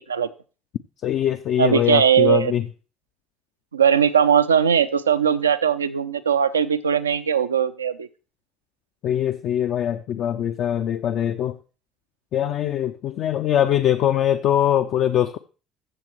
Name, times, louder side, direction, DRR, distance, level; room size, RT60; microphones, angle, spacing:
voice 1, 1.0-2.6 9.0-11.6 12.3-15.4, left 10 dB, 55° left, 0.4 m, -22 dB
voice 2, 1.6-2.5 3.7-8.1, right 7 dB, 85° right, 0.4 m, -19 dB
14.5 x 7.4 x 3.1 m
figure-of-eight pair, 55°, 0 cm